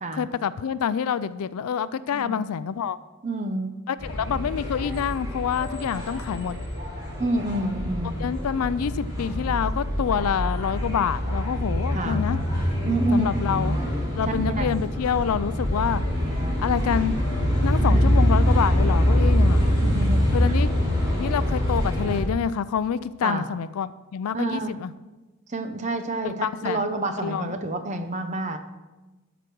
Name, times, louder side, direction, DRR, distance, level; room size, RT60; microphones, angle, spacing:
voice 1, 0.1-3.0 3.9-6.6 8.2-12.4 13.1-13.8 14.2-16.0 16.6-17.2 17.6-19.6 20.3-20.7 21.2-24.9 26.4-26.8 27.2-27.5, left 7 dB, 85° left, 15 dB, 0.4 m, -27 dB
voice 2, 2.1-2.4 3.2-3.8 7.2-8.4 11.9-12.2 12.8-13.4 14.3-14.7 17.8-18.1 19.5-20.5 23.2-23.5 24.3-24.8 25.5-28.6, right 2 dB, 30° right, 7 dB, 0.8 m, -28 dB
sound 1, 4.0-22.2, equal, 15° right, 3.9 m, -24 dB
13.0 x 5.1 x 6.1 m, 1.1 s
head